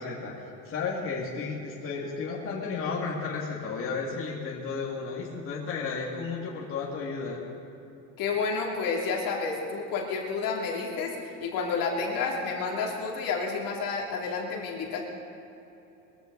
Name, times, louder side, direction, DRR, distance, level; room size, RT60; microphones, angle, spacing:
voice 1, 0.0-7.4, left 4 dB, 30° left, -4 dB, 2.5 m, -33 dB
voice 2, 8.2-15.0, left 4 dB, 50° left, -1 dB, 2.9 m, -30 dB
21.5 x 15.0 x 4.0 m, 3.0 s
cardioid pair, 140°, 42 cm